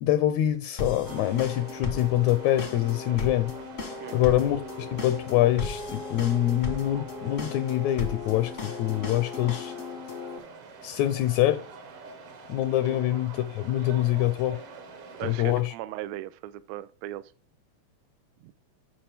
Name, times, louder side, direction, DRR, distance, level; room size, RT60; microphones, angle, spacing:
voice 1, 0.0-3.5 4.1-9.7 10.8-11.6 12.5-14.6 15.2-15.7, left 13 dB, 80° left, 1.8 m, -25 dB
sound 1, 0.8-10.4, left 3 dB, 50° left, 0.8 m, -36 dB
sound 2, 1.0-15.6, right 4 dB, 55° right, 2.0 m, -46 dB
voice 2, 4.0-4.3 12.9-13.0 15.2-17.3 18.4-18.5, right 14 dB, 80° right, 1.7 m, -38 dB
10.5 x 5.0 x 3.4 m
omnidirectional pair, 3.4 m